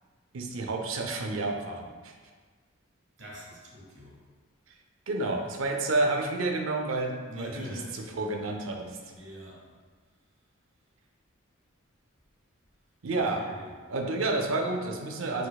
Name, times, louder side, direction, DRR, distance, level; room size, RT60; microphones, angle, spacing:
voice 1, 0.3-2.1 4.7-4.8 5.1-7.7 7.9-9.1 13.0-13.4 13.9-15.5, right 2 dB, 75° right, 3 dB, 0.5 m, -30 dB
voice 2, 3.2-4.2 7.3-8.1 9.1-9.7 13.1-13.7, left 1 dB, 60° right, -4 dB, 1.1 m, -44 dB
4.4 x 4.1 x 2.3 m, 1.5 s
head